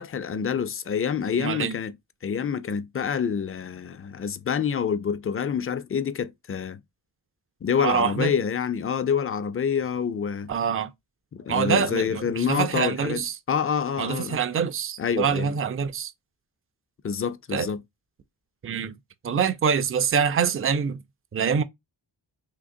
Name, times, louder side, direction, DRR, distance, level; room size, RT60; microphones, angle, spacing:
voice 1, 0.0-1.9 2.2-6.8 7.6-10.5 11.3-14.4 15.0-15.5 17.0-17.8, left 7 dB, 30° left, 0.4 m, -27 dB
voice 2, 1.4-1.7 7.8-8.3 10.5-10.9 11.5-13.4 14.0-16.1 17.5-17.7 18.6-18.9 19.2-21.0 21.3-21.6, right 7 dB, 30° right, 0.4 m, -25 dB
3.8 x 2.9 x 2.5 m
wide cardioid pair, 100°, 44 cm